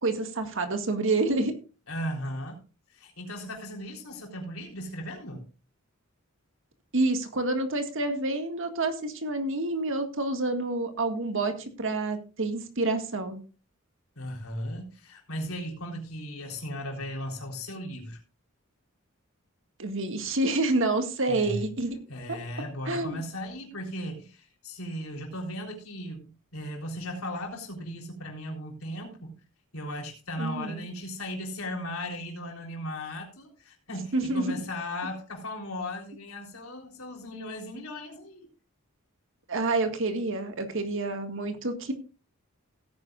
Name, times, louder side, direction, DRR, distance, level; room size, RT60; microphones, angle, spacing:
voice 1, 0.0-1.6 6.9-13.4 19.8-22.0 22.3-22.4 22.9-23.2 30.4-30.8 34.1-34.6 39.5-41.9, right 2 dB, 65° right, 1.9 m, -28 dB
voice 2, 1.9-2.6 2.9-5.5 14.2-18.2 21.3-21.7 22.1-29.4 29.7-38.5, left 1 dB, 90° left, 3.7 m, -37 dB
17.0 x 9.6 x 2.4 m
head